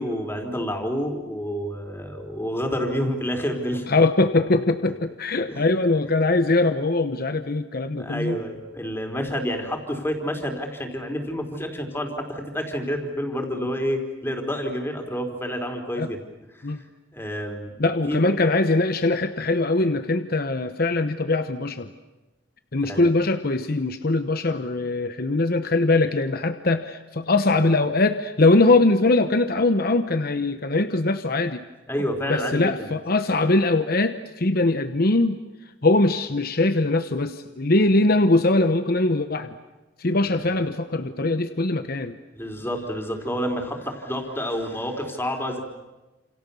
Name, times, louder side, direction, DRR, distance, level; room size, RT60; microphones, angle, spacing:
voice 1, 0.0-3.9 5.5-5.7 8.0-16.2 16.5-16.7 17.1-17.7 18.1-18.2 22.8-23.0 31.9-32.9 42.3-45.6, equal, 15° left, 3 dB, 3.9 m, -29 dB
voice 2, 3.9-8.4 16.0-16.1 16.6-16.8 17.8-21.9 22.7-31.6 32.3-35.4 35.8-39.5 40.0-42.2, left 2 dB, 55° left, 9 dB, 1.0 m, -21 dB
29.0 x 28.0 x 7.0 m, 1.1 s
head